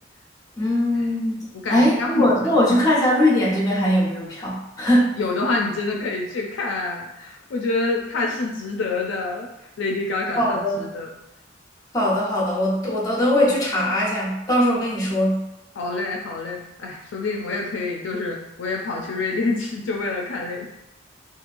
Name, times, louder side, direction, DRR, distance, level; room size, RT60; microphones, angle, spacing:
voice 1, 0.6-1.4 1.7-5.2 10.4-10.9 11.9-15.4, left 1 dB, 20° left, -4 dB, 0.8 m, -20 dB
voice 2, 1.5-2.5 5.1-9.5 9.8-11.1 15.8-20.7, left 3 dB, 70° left, 0 dB, 0.4 m, -27 dB
2.9 x 2.3 x 2.5 m, 0.91 s
head